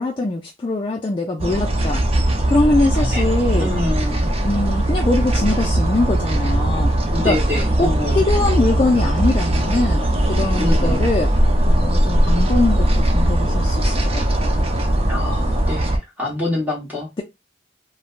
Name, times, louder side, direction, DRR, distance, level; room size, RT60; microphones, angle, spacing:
voice 1, 0.0-2.0 2.4-3.7 4.4-6.9 7.2-7.4 7.8-11.3 11.7-14.8, left 2 dB, 25° left, 0.3 m, -22 dB
sound 1, 1.4-16.0, right 1 dB, 30° right, 0.5 m, -19 dB
voice 2, 3.6-4.3 7.1-8.2 10.5-11.1 15.1-17.1, left 2 dB, 10° right, 1.1 m, -26 dB
3.2 x 2.1 x 2.4 m
head